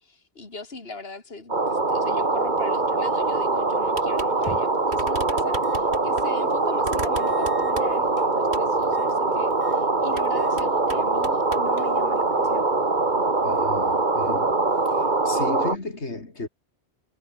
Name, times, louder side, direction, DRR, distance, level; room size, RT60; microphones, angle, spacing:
voice 1, 0.0-12.6, left 3 dB, 65° left, 3.2 m, -40 dB
sound 1, 1.5-15.8, right 3 dB, 45° right, 2.4 m, -23 dB
sound 2, 3.9-4.3 4.6-4.7 4.9-6.3 6.8-8.1 8.5-8.7 10.1-10.3 10.6-11.7, right 3 dB, 75° right, 3.6 m, -37 dB
sound 3, 4.3-4.9 5.6-5.9 6.2-6.3 7.2-8.3 8.8-9.2 9.5-9.8 10.3-10.6 10.9-11.0 11.5-12.3, left 1 dB, 30° left, 5.2 m, -43 dB
voice 2, 13.4-14.6 14.9-16.5, left 3 dB, 90° left, 3.8 m, -34 dB
omnidirectional pair, 1.1 m